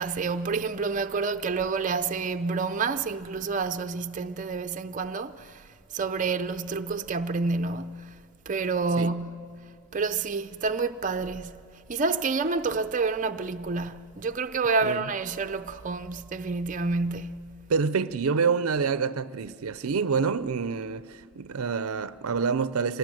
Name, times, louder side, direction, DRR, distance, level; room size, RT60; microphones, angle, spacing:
voice 1, 0.0-8.1 8.5-9.6 9.9-11.5 11.9-17.5, right 4 dB, 35° right, 0.6 m, -29 dB
voice 2, 17.7-23.0, right 5 dB, 85° right, 0.5 m, -27 dB
24.5 x 19.5 x 7.8 m
head